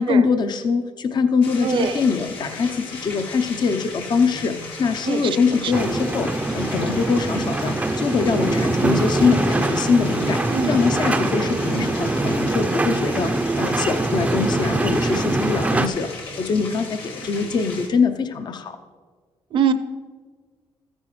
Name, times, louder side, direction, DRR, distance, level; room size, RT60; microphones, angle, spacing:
voice 1, 0.0-18.7, left 5 dB, 50° left, 8 dB, 0.7 m, -23 dB
sound 1, 1.4-17.9, left 3 dB, 75° left, 2.0 m, -36 dB
voice 2, 1.6-2.0 5.0-5.7 10.5-11.0 19.5-19.7, right 7 dB, 60° right, 10 dB, 0.7 m, -24 dB
sound 2, 5.7-15.9, right 2 dB, 15° right, 0.5 m, -23 dB
13.5 x 9.8 x 3.1 m, 1.5 s
cardioid pair, 110°, 10 cm